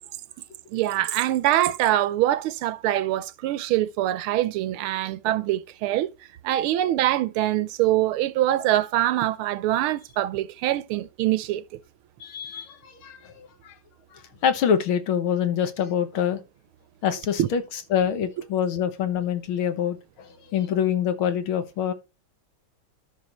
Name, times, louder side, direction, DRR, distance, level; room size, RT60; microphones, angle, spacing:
voice 1, 0.7-6.1 6.4-11.8 17.4-17.5, right 14 dB, 90° right, 1.6 m, -24 dB
voice 2, 12.2-13.8 14.1-16.4 17.0-21.9, left 8 dB, 75° left, 2.0 m, -26 dB
13.0 x 5.3 x 3.0 m
omnidirectional pair, 2.3 m